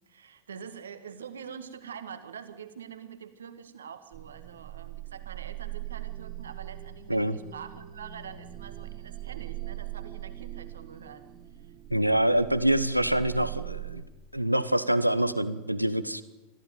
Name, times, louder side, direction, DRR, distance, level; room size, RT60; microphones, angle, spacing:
voice 1, 0.1-11.3, right 7 dB, 65° right, 10 dB, 1.8 m, -45 dB
sound 1, 4.1-14.0, right 15 dB, 35° right, 2.1 m, -41 dB
voice 2, 11.9-14.0 14.3-16.2, right 1 dB, 90° right, 13 dB, 0.9 m, -25 dB
22.0 x 14.5 x 9.2 m, 1.1 s
figure-of-eight pair, 90°, 0 cm